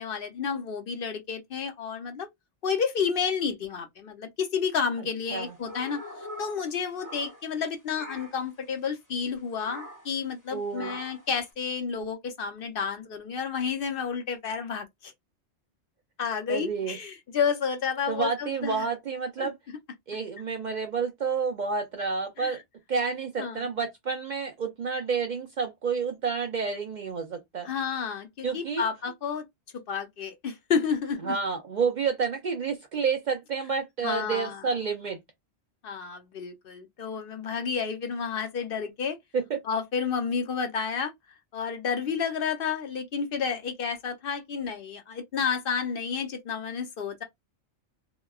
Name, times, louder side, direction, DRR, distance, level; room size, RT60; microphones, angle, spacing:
voice 1, 0.0-2.3 2.6-15.1 16.2-18.9 19.4-19.5 22.4-22.6 23.4-23.6 27.6-29.5 29.9-31.3 34.0-34.7 35.8-39.2 39.6-41.1 41.5-47.2, left 6 dB, 60° left, 0.7 m, -31 dB
sound 1, 5.2-7.7 7.9-8.5 9.6-10.2 10.7-11.3, equal, 20° left, 0.8 m, -43 dB
voice 2, 10.5-11.0 16.5-17.0 18.1-19.6 20.1-22.6 22.9-27.7 28.4-28.8 31.2-35.2 39.3-39.6, right 5 dB, 55° right, 0.5 m, -29 dB
2.9 x 2.2 x 2.3 m
omnidirectional pair, 1.2 m